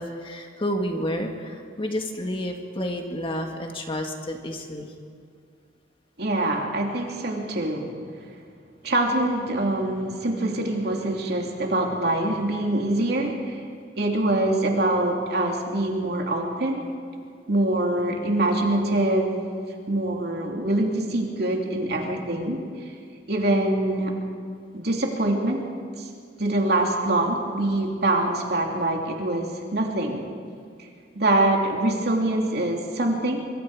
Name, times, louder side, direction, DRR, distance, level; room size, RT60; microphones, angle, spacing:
voice 1, 0.0-4.9, equal, 30° left, 3 dB, 1.9 m, -30 dB
voice 2, 6.2-7.9 8.8-13.6 14.0-16.8 17.5-19.4 19.9-22.9 23.3-24.2 24.7-25.6 26.0-26.1 26.4-30.2 31.1-33.4, right 1 dB, 60° right, 1 dB, 2.9 m, -24 dB
24.5 x 24.0 x 5.0 m, 2.2 s
head